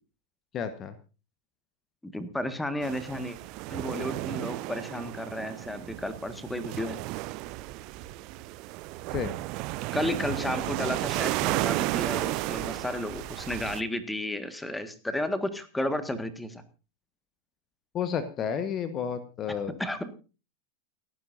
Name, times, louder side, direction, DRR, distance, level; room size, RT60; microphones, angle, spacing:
voice 1, 0.5-1.0 9.1-9.3 17.9-19.8, left 7 dB, 30° left, 11 dB, 1.3 m, -31 dB
voice 2, 2.0-3.4 3.7-7.0 9.9-16.6 19.8-20.1, left 1 dB, 5° left, 10 dB, 1.7 m, -33 dB
sound 1, 2.8-13.8, right 18 dB, 40° right, 0.6 m, -33 dB
29.5 x 10.5 x 2.7 m, 0.34 s
figure-of-eight pair, 90°, 0 cm